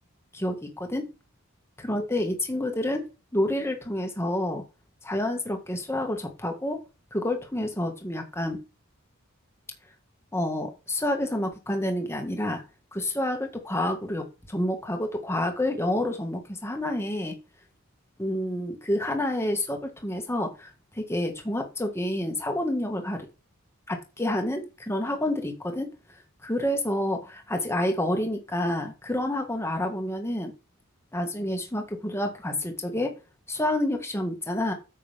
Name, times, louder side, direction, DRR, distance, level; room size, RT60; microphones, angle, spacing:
voice 1, 0.3-1.1 1.8-4.6 5.0-6.8 7.1-8.6 10.3-12.6 12.9-17.4 18.2-23.3 23.9-25.9 26.4-30.5 31.1-33.2 33.5-34.7, left 1 dB, 10° left, 4 dB, 1.9 m, -29 dB
9.8 x 7.5 x 3.6 m, 0.29 s
head